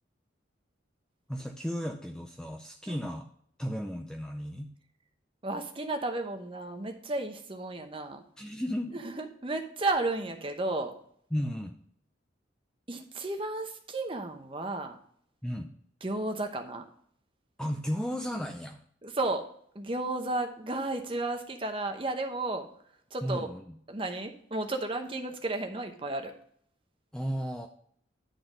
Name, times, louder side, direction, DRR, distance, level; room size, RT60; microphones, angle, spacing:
voice 1, 1.3-3.3 3.6-4.7 8.4-9.0 11.3-11.8 15.4-15.7 17.6-18.8 23.2-23.6 27.1-27.7, equal, 5° left, 4 dB, 0.4 m, -34 dB
voice 2, 5.4-8.2 8.9-10.9 12.9-15.0 16.0-16.9 19.0-19.4 19.7-22.7 23.1-23.5 23.9-26.3, right 2 dB, 30° right, 5 dB, 0.9 m, -33 dB
11.0 x 3.9 x 5.1 m, 0.63 s
head